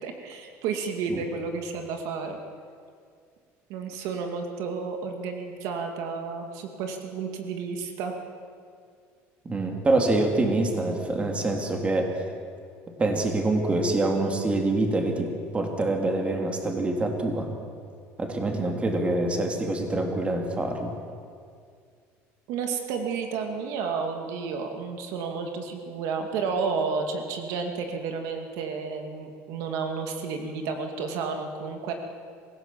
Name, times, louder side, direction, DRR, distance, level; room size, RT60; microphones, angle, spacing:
voice 1, 0.0-2.4 3.7-8.1 22.5-31.9, right 5 dB, 75° right, 4 dB, 2.4 m, -31 dB
voice 2, 9.4-12.1 13.0-17.5 18.2-21.0, right 2 dB, 20° right, 3 dB, 3.0 m, -25 dB
25.5 x 16.0 x 7.6 m, 2.2 s
cardioid pair, 130°, 6 cm